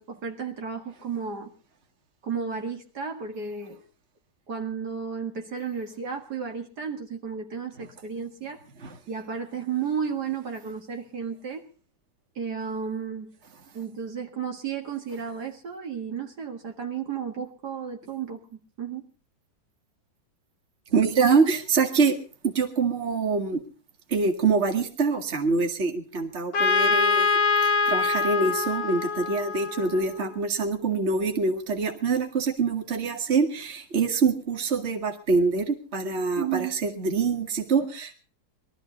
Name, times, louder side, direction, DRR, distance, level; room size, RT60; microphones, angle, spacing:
voice 1, 0.0-1.5 2.2-3.8 4.5-8.6 9.1-11.7 12.4-13.3 13.7-19.1 36.4-36.8, right 6 dB, 65° right, 3 dB, 2.4 m, -33 dB
voice 2, 20.9-22.2 22.4-23.6 24.1-38.2, right 4 dB, 35° right, 4 dB, 2.1 m, -25 dB
Trumpet, 26.5-30.3, left 4 dB, 75° left, 1.9 m, -24 dB
22.0 x 13.5 x 4.0 m, 0.38 s
omnidirectional pair, 2.0 m